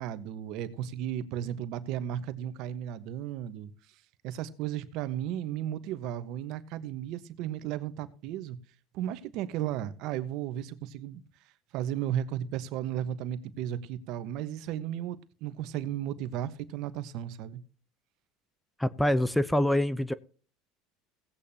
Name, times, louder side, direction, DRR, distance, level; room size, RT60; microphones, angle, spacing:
voice 1, 0.0-3.7 4.2-8.6 8.9-11.2 11.7-17.6, right 11 dB, 60° right, 1.1 m, -34 dB
voice 2, 18.8-20.1, left 1 dB, 5° left, 0.6 m, -25 dB
17.0 x 8.6 x 2.8 m
supercardioid pair, 105°, 0 cm